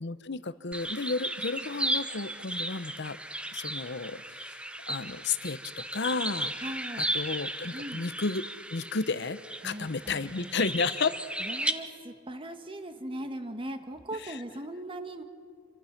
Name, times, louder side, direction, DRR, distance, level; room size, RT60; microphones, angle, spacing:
voice 1, 0.0-3.2 3.5-4.6 4.9-6.5 7.0-8.4 8.7-9.4 9.6-11.1 14.2-14.4, left 4 dB, 60° left, 13 dB, 0.9 m, -32 dB
sound 1, 0.7-11.7, right 1 dB, 5° right, 0.9 m, -35 dB
voice 2, 6.6-7.0 7.7-8.0 9.6-10.6 11.4-15.2, right 1 dB, 25° right, 7 dB, 1.5 m, -39 dB
27.5 x 24.5 x 6.0 m, 2.1 s
head